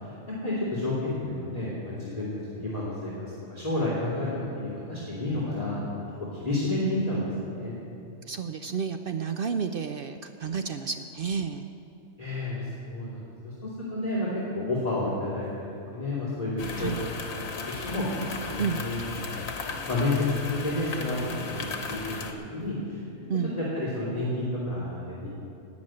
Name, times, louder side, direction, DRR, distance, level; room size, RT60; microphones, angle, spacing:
voice 1, 0.4-3.1 3.5-5.9 6.4-7.8 12.2-14.3 14.5-15.5 15.9-16.9 17.3-18.1 18.4-20.2 20.5-22.2 22.5-23.0 23.6-25.3, left 2 dB, 30° left, -8 dB, 2.8 m, -30 dB
voice 2, 8.3-11.7 16.8-17.0 18.6-18.8 23.3-23.5, right 6 dB, 65° right, 7 dB, 0.6 m, -31 dB
sound 1, 16.6-22.3, left 4 dB, 75° left, 1.4 m, -36 dB
18.0 x 6.1 x 8.8 m, 2.8 s
omnidirectional pair, 1.4 m